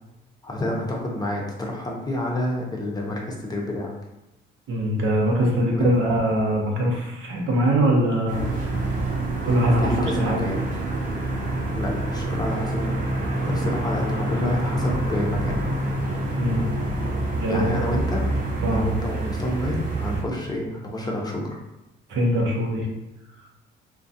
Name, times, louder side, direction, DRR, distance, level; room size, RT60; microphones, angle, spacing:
voice 1, 0.4-3.9 5.7-5.9 9.6-10.6 11.7-13.0 13.4-15.8 17.5-18.4 18.7-21.6, left 1 dB, 20° left, -1 dB, 0.6 m, -29 dB
voice 2, 4.7-8.4 9.4-10.4 16.4-16.6 17.4-17.8 18.6-18.8 22.1-22.9, right 1 dB, 75° right, -1 dB, 0.7 m, -22 dB
sound 1, 8.3-20.2, right 2 dB, 40° right, 0.8 m, -27 dB
2.3 x 2.2 x 2.6 m, 0.95 s
cardioid pair, 90°, 20 cm